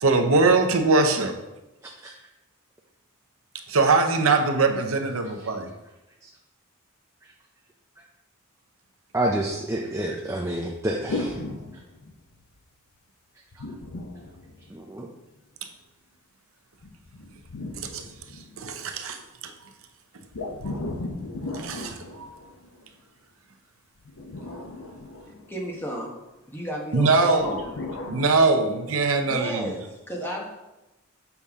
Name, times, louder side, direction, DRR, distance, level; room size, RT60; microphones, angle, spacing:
voice 1, 0.0-1.3 3.7-5.7 17.8-18.0 18.6-19.2 19.4-19.5 21.5-22.3 26.9-27.6 28.0-29.7, right 3 dB, 70° right, 5 dB, 0.7 m, -22 dB
voice 2, 9.1-11.4 14.7-15.1, right 1 dB, 15° right, 0 dB, 0.5 m, -28 dB
sound 1, 11.1-12.5 13.5-15.1 16.8-18.8 20.3-22.9 24.0-25.9 27.4-28.4, left 2 dB, 75° left, 0.7 m, -36 dB
voice 3, 25.5-26.2 26.5-27.9 29.3-30.5, equal, 10° left, -2 dB, 1.1 m, -33 dB
7.0 x 5.4 x 3.6 m, 1.0 s
head